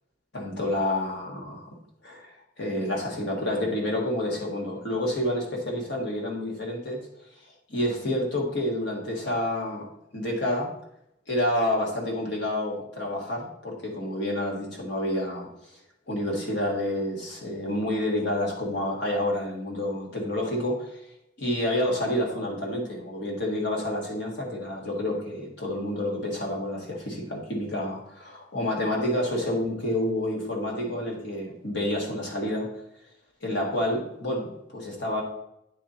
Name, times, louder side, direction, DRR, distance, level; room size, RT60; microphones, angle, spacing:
voice 1, 0.3-1.7 2.0-7.0 7.7-9.9 10.1-10.7 11.3-15.5 16.1-20.9 21.4-32.7 33.4-35.2, left 1 dB, 60° left, -2 dB, 1.7 m, -29 dB
8.9 x 3.8 x 4.2 m, 0.80 s
head